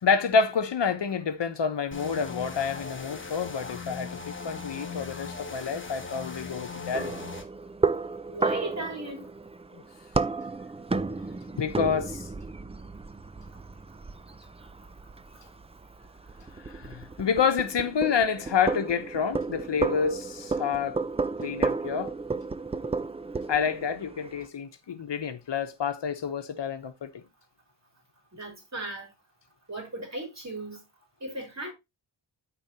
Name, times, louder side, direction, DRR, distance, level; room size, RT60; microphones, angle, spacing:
voice 1, 0.0-7.1 9.7-9.8 11.6-12.3 16.6-21.0 21.4-22.1 23.5-27.2, left 6 dB, 70° left, 1.0 m, -28 dB
sound 1, 1.9-7.4, left 4 dB, 25° left, 1.2 m, -39 dB
sound 2, 6.9-24.5, right 4 dB, 15° right, 0.3 m, -33 dB
voice 2, 8.3-9.3 28.3-29.1 29.7-30.8 31.2-31.7, right 2 dB, 35° right, 3.6 m, -36 dB
13.0 x 4.3 x 2.8 m
wide cardioid pair, 110°, 45 cm